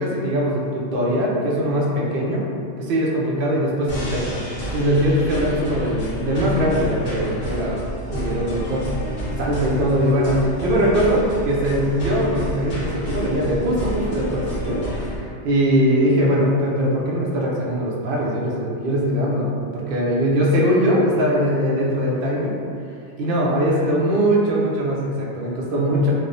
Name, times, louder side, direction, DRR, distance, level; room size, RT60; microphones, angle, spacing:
voice 1, 0.0-2.4 2.8-7.8 8.1-8.8 9.4-19.5 19.7-22.6 23.2-26.1, equal, 60° right, -3 dB, 0.6 m, -21 dB
sound 1, 3.9-15.2, equal, 80° left, 1.1 m, -29 dB
3.1 x 2.1 x 2.5 m, 2.4 s
omnidirectional pair, 1.2 m